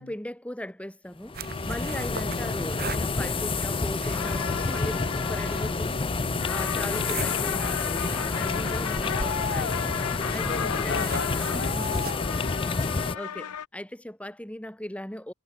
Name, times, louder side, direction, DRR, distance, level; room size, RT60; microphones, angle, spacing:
voice 1, 0.0-6.2 6.5-9.9 10.3-11.1 11.5-11.9 13.1-15.3, left 1 dB, 5° left, 2.5 m, -38 dB
sound 1, 1.2-13.2, left 4 dB, 25° left, 0.6 m, -29 dB
sound 2, 1.3-12.1, right 3 dB, 45° right, 2.6 m, -39 dB
sound 3, 4.1-13.7, left 8 dB, 75° left, 0.6 m, -34 dB
voice 2, 8.5-8.9 10.4-12.7, left 4 dB, 55° left, 3.1 m, -38 dB
head